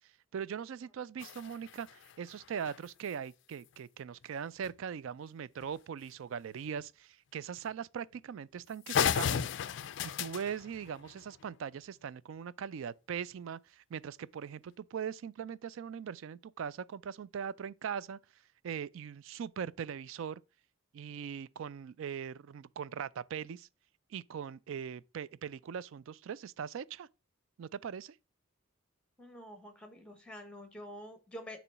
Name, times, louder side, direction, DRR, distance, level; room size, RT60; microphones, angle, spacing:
voice 1, 0.3-9.5 10.0-18.2 18.6-20.4 20.9-23.7 24.1-27.1 27.6-28.2, right 7 dB, 65° right, 0.3 m, -40 dB
sound 1, 1.2-3.1 4.6-4.7 5.1-5.2 5.6-5.8 6.7-6.8 7.6-7.7 8.1-8.2 8.6-8.7 8.9-11.6, left 8 dB, 55° left, 0.3 m, -35 dB
voice 2, 29.2-31.6, equal, 5° left, 1.1 m, -47 dB
6.8 x 3.1 x 5.8 m
head